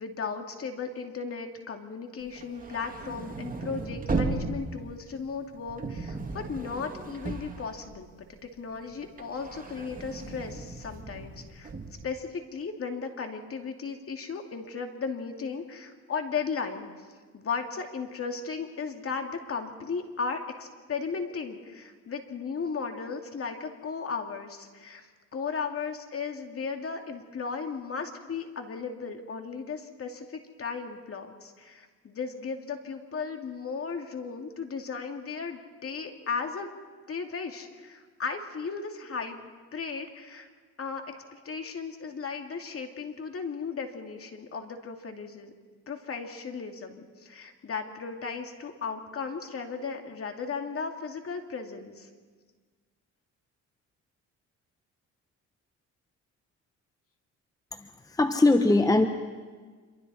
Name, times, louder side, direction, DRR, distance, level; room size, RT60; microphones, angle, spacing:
voice 1, 0.0-11.7 12.0-16.9 17.3-36.7 37.1-40.5 40.8-41.0 41.3-45.5 45.9-52.1, left 5 dB, 50° left, 4 dB, 2.5 m, -36 dB
sound 1, 2.3-8.4 8.7-12.1, right 3 dB, 30° right, 2.2 m, -36 dB
voice 2, 57.7-59.1, left 2 dB, 10° left, 7 dB, 1.0 m, -22 dB
27.0 x 23.5 x 4.3 m, 1.5 s
cardioid pair, 90°, 30 cm